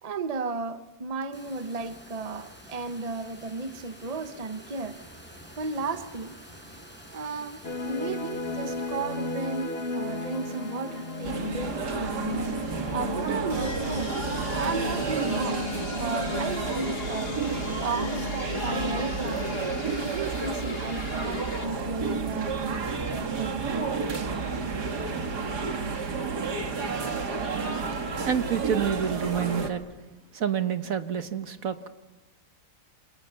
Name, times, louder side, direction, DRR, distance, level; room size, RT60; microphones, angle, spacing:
voice 1, 0.0-5.0 5.6-6.4 7.1-14.2 14.4-17.3 17.8-19.5 20.0-24.1, right 4 dB, 25° right, 1.0 m, -34 dB
sound 1, 1.3-13.4, equal, 5° left, 5.1 m, -49 dB
sound 2, 7.6-21.7, left 3 dB, 35° left, 2.2 m, -35 dB
sound 3, 11.2-29.7, right 4 dB, 85° right, 2.6 m, -31 dB
voice 2, 28.2-29.8 30.3-31.9, right 8 dB, 60° right, 1.5 m, -28 dB
28.5 x 27.0 x 7.0 m
omnidirectional pair, 1.7 m